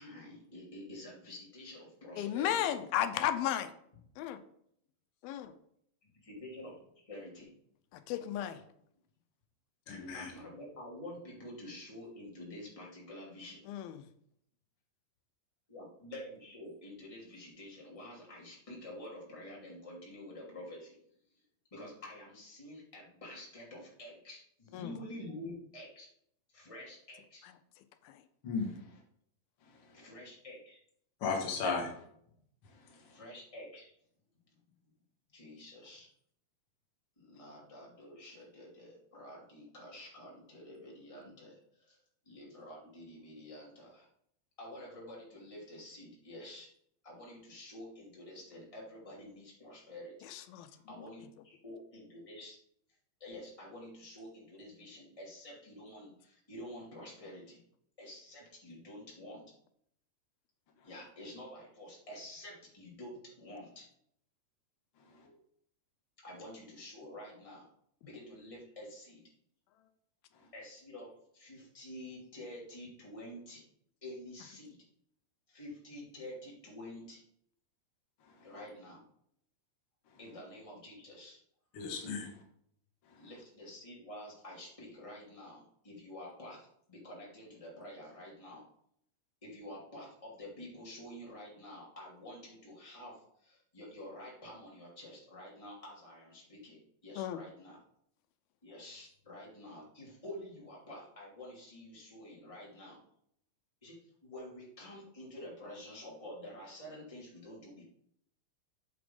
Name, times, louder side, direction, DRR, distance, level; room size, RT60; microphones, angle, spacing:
voice 1, 0.0-2.7 6.0-7.5 10.1-13.6 15.7-21.0 21.7-26.1 26.5-27.5 29.9-30.8 31.8-31.9 33.0-33.9 35.3-36.1 37.2-42.0 42.2-44.1 44.6-46.7 47.0-50.3 50.7-52.6 53.2-57.6 58.0-59.5 60.8-63.9 65.2-65.4 66.2-67.7 68.0-69.2 70.5-73.6 74.0-74.8 75.5-77.2 78.4-79.0 80.2-81.4 83.2-88.7 89.4-97.8 98.6-103.0 103.8-107.8, left 1 dB, 10° left, -4 dB, 2.3 m, -49 dB
voice 2, 2.2-3.7 4.2-4.4 5.2-5.5 8.1-8.6 13.7-14.0 24.7-24.9 50.3-50.7 97.2-97.4, left 11 dB, 90° left, 10 dB, 2.6 m, -33 dB
voice 3, 9.9-10.3 28.4-28.8 31.2-31.9 81.7-82.3, left 4 dB, 50° left, -1 dB, 1.8 m, -34 dB
8.5 x 6.9 x 3.8 m, 0.69 s
omnidirectional pair, 4.2 m